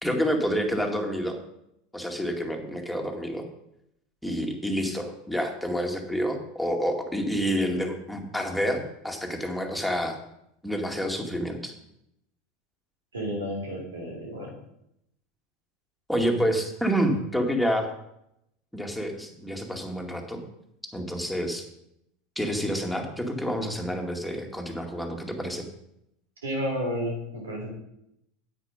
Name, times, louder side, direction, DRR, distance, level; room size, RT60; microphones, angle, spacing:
voice 1, 0.0-1.4 1.9-3.5 4.2-10.2 10.6-11.7 16.1-17.9 18.7-20.4 20.9-21.6 22.4-25.6, equal, ahead, 2 dB, 2.2 m, -28 dB
voice 2, 13.1-14.5 26.4-27.7, equal, 90° right, 0 dB, 3.8 m, -31 dB
9.7 x 8.6 x 5.2 m, 0.79 s
hypercardioid pair, 85°, 0 cm